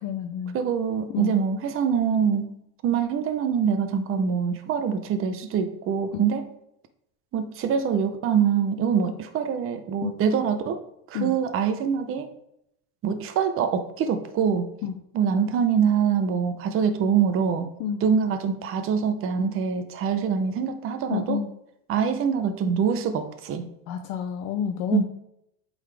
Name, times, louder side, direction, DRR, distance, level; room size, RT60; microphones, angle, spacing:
voice 1, 0.0-0.6 1.1-1.3 10.0-10.2 11.1-11.3 14.8-14.9 17.8-18.0 21.1-21.5 23.9-25.0, left 8 dB, 50° left, 5 dB, 0.6 m, -29 dB
voice 2, 0.5-2.5 2.8-6.5 7.3-10.8 11.1-12.3 13.0-14.7 15.1-17.7 18.0-21.4 21.9-23.7 24.9-25.0, right 7 dB, 30° right, 9 dB, 0.6 m, -24 dB
8.2 x 3.9 x 3.4 m, 0.77 s
cardioid pair, 145°, 43 cm